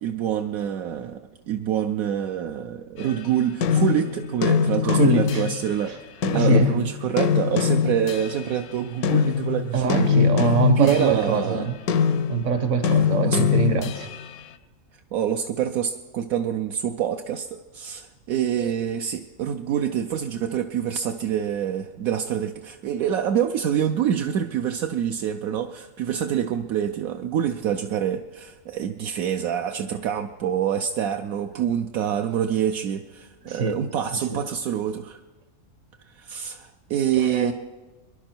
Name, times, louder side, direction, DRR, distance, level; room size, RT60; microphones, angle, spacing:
voice 1, 0.0-6.0 6.3-10.3 10.8-11.7 12.9-13.4 15.1-35.2 36.2-37.5, right 9 dB, 75° right, 5 dB, 1.1 m, -26 dB
sound 1, 3.0-5.8 6.2-8.6 9.0-14.3, left 7 dB, 90° left, 1.2 m, -23 dB
voice 2, 4.8-5.4 6.3-6.7 9.7-11.8 12.3-14.1 33.5-33.8 34.3-34.4 37.2-37.5, right 5 dB, 60° right, 9 dB, 1.4 m, -23 dB
24.5 x 11.0 x 4.5 m, 1.2 s
omnidirectional pair, 1.5 m